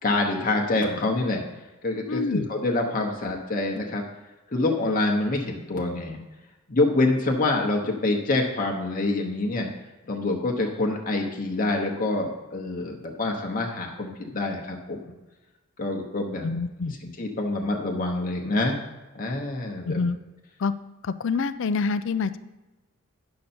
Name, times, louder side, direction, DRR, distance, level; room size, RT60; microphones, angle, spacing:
voice 1, 0.0-1.4 1.8-4.0 4.5-6.2 6.7-9.7 10.0-15.0 15.8-16.5 17.0-18.8 19.1-20.0, left 2 dB, 40° left, 1 dB, 1.0 m, -26 dB
voice 2, 2.1-2.5 16.4-17.0 19.8-20.2 20.6-20.7 21.0-22.4, left 4 dB, 60° left, 13 dB, 0.4 m, -26 dB
9.8 x 6.7 x 4.3 m, 1.1 s
head